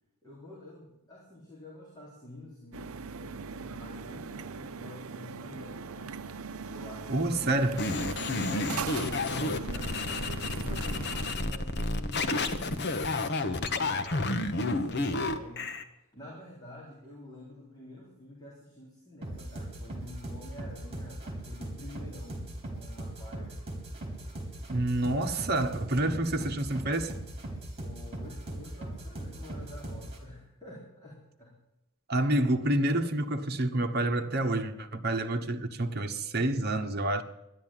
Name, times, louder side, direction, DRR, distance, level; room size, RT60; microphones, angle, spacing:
voice 1, 0.2-6.2 6.7-7.5 8.4-13.0 13.4-15.7 16.1-23.6 27.8-31.6, left 1 dB, 20° left, 3.7 m, -48 dB
sound 1, 2.7-11.3, right 5 dB, 80° right, 0.7 m, -40 dB
voice 2, 7.1-7.8 24.7-27.1 32.1-37.2, right 1 dB, 50° right, 1.2 m, -28 dB
sound 2, 7.8-15.8, left 2 dB, 50° left, 1.1 m, -30 dB
sound 3, 19.2-30.2, right 1 dB, 30° right, 3.8 m, -40 dB
13.0 x 11.0 x 9.0 m
head